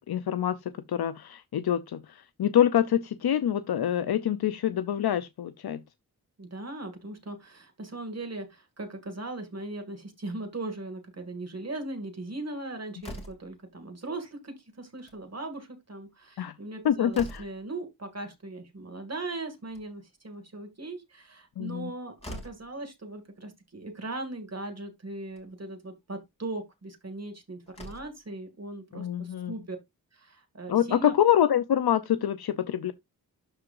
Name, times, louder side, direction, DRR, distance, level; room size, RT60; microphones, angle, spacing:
voice 1, 0.1-5.8 16.4-16.5 16.8-17.5 21.6-21.9 28.9-29.6 30.7-32.9, left 10 dB, 85° left, 0.6 m, -26 dB
voice 2, 6.4-29.8 30.1-31.1, right 2 dB, 45° right, 2.2 m, -39 dB
Slam, 13.0-13.6 14.8-15.2 15.6-15.7 15.9-16.0 16.6-17.7 19.4-20.2 21.7-21.8 22.2-22.7 23.8-23.9 24.3-24.4 25.2-25.5 27.2-27.3 27.7-28.2, equal, 15° left, 2.6 m, -44 dB
12.0 x 4.8 x 2.5 m
wide cardioid pair, 120°, 37 cm